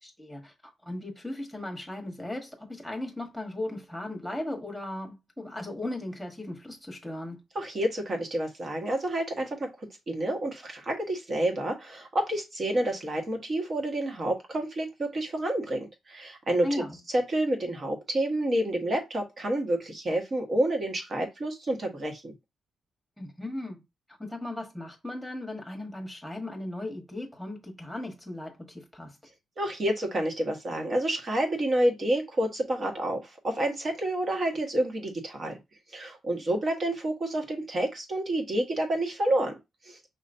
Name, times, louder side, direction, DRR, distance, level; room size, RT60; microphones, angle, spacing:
voice 1, 0.0-7.4 16.6-17.0 23.2-23.8 24.2-29.2, left 1 dB, ahead, 1.3 m, -37 dB
voice 2, 7.5-16.8 17.1-22.3 29.6-35.5 35.9-39.5 39.8-40.0, right 1 dB, 40° right, 1.4 m, -29 dB
5.5 x 3.0 x 2.6 m
cardioid pair, 110°, 0 cm